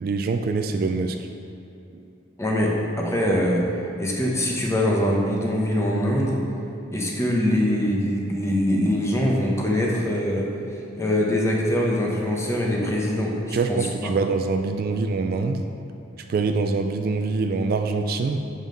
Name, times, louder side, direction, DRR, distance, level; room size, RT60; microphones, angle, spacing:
voice 1, 0.0-1.2 13.5-15.7 16.3-18.4, right 4 dB, 50° right, 6 dB, 0.3 m, -24 dB
voice 2, 2.4-3.7 4.0-6.4 6.9-10.5 11.0-14.1, left 1 dB, 15° left, -2 dB, 0.8 m, -23 dB
7.2 x 5.5 x 3.9 m, 2.7 s
head